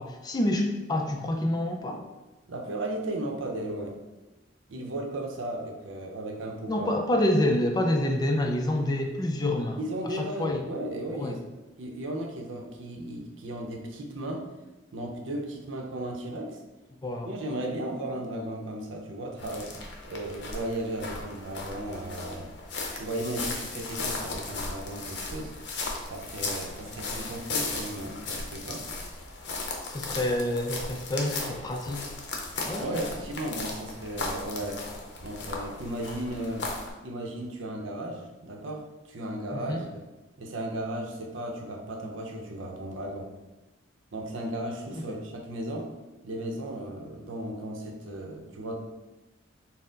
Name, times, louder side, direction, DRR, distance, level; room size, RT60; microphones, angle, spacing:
voice 1, 0.0-2.0 6.7-9.8 10.0-10.6 11.1-11.4 17.0-17.3 29.9-32.1 32.6-33.1 39.5-39.8 44.9-45.0, left 1 dB, 20° left, 3 dB, 0.3 m, -27 dB
voice 2, 2.5-4.0 4.7-6.9 9.8-11.4 11.8-14.5 14.9-16.6 17.2-19.8 20.0-22.5 22.9-25.5 26.1-28.9 32.8-34.8 35.2-36.7 37.0-40.0 40.4-43.3 44.1-45.9 46.2-48.8, right 1 dB, 85° right, 2 dB, 0.6 m, -35 dB
sound 1, 19.4-36.9, left 3 dB, 60° left, 0.6 m, -36 dB
4.2 x 2.0 x 3.8 m, 1.1 s
head